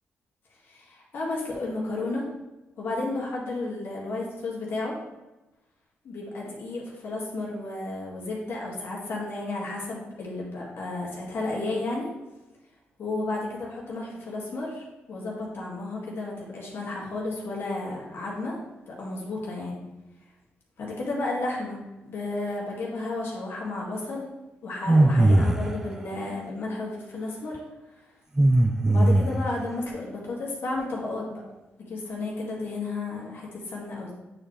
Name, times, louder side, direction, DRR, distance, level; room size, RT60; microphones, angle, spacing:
voice 1, 0.6-2.2 2.8-5.0 6.0-12.1 13.0-18.6 18.9-19.8 20.8-24.3 24.6-27.6 28.9-31.4 31.8-34.1, left 2 dB, 70° left, -3 dB, 2.0 m, -32 dB
sound 1, 24.9-25.8 28.4-29.5, right 1 dB, 10° right, 0.3 m, -19 dB
8.6 x 4.6 x 3.3 m, 1.0 s
cardioid pair, 120°, 4 cm